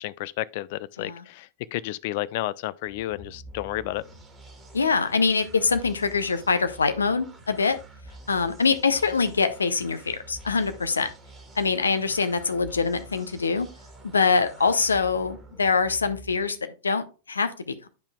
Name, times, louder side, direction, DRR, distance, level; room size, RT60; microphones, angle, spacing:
voice 1, 0.0-4.0, left 16 dB, 50° left, 0.3 m, -31 dB
sound 1, 2.8-16.6, right 1 dB, 10° right, 1.6 m, -48 dB
voice 2, 4.7-7.8 8.3-11.1 11.6-13.7 14.0-17.9, left 4 dB, 75° left, 0.7 m, -24 dB
9.0 x 5.6 x 2.3 m
figure-of-eight pair, 90°, 0 cm